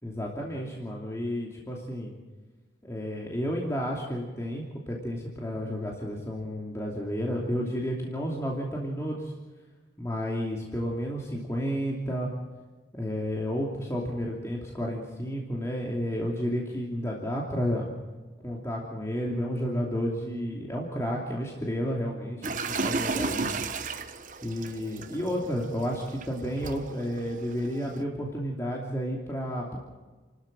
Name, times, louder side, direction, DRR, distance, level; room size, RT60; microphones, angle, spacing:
voice 1, 0.0-2.1 2.8-9.3 10.0-12.3 12.9-17.9 18.4-23.5 24.4-29.8, equal, 15° left, -2 dB, 2.8 m, -31 dB
sound 1, 22.4-28.0, right 4 dB, 45° right, 1.2 m, -34 dB
30.0 x 13.0 x 7.7 m, 1.3 s
head